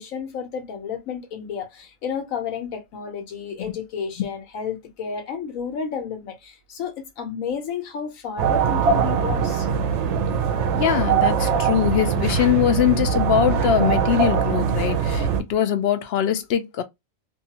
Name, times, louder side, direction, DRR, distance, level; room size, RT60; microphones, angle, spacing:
voice 1, 0.0-9.7, left 7 dB, 85° left, 1.2 m, -31 dB
sound 1, 8.4-15.4, right 6 dB, 65° right, 0.8 m, -22 dB
voice 2, 10.7-16.8, left 10 dB, 65° left, 0.7 m, -22 dB
2.7 x 2.4 x 2.8 m
omnidirectional pair, 1.4 m